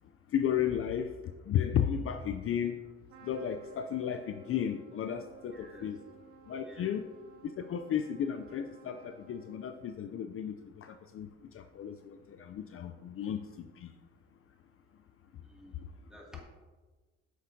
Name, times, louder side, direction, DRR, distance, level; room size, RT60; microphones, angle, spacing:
voice 1, 0.3-1.1 1.5-2.8 3.2-6.0 6.5-7.0 7.4-11.3 11.5-13.4 13.8-13.9, left 9 dB, 50° left, 8 dB, 0.4 m, -33 dB
Trumpet, 3.1-10.0, right 5 dB, 65° right, 1.7 m, -56 dB
voice 2, 5.5-5.9 6.6-6.9 11.9-12.0 15.4-16.4, equal, ahead, -3 dB, 2.1 m, -52 dB
9.1 x 6.3 x 2.7 m, 1.3 s
cardioid pair, 90°, 30 cm